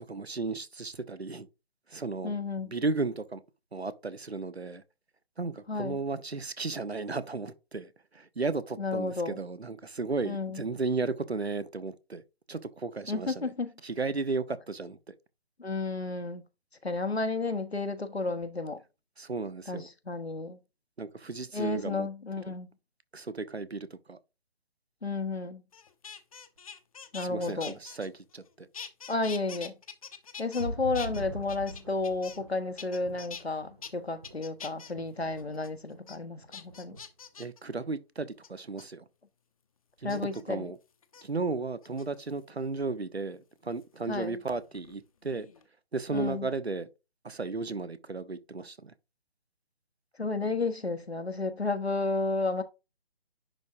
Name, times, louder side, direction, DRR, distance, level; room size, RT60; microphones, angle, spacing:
voice 1, 0.0-1.5 1.9-2.3 2.6-3.4 3.7-4.8 5.4-12.2 12.5-13.5 13.8-15.1 19.2-19.9 21.0-22.1 22.5-22.6 23.1-24.2 27.2-28.7 37.4-39.0 40.0-40.2 40.5-40.8 41.2-45.5 45.9-46.9 47.2-48.9, right 3 dB, 85° right, 1.0 m, -34 dB
voice 2, 2.2-2.7 5.7-6.0 8.8-9.4 10.2-10.6 13.1-13.7 15.6-16.4 16.8-18.8 19.7-20.6 21.5-22.7 25.0-25.6 27.1-27.7 29.1-29.7 30.4-37.0 40.0-40.7 44.1-44.4 46.1-46.5 50.2-52.6, left 3 dB, 90° left, 1.2 m, -32 dB
sound 1, 25.7-28.5 28.7-30.7 30.9-32.5 32.8-33.4 33.8-33.9 34.2-34.9 35.4-35.7 36.1-36.2 36.5-37.6 38.4-38.8 40.1-40.4 41.0-41.2 41.8-42.4 43.8-45.0 45.3-45.7, left 6 dB, 35° left, 0.7 m, -45 dB
sound 2, 30.6-34.6 34.9-36.0 36.2-37.0 37.4-37.5, right 1 dB, 25° right, 0.4 m, -42 dB
10.5 x 3.6 x 2.6 m
figure-of-eight pair, 145°, 31 cm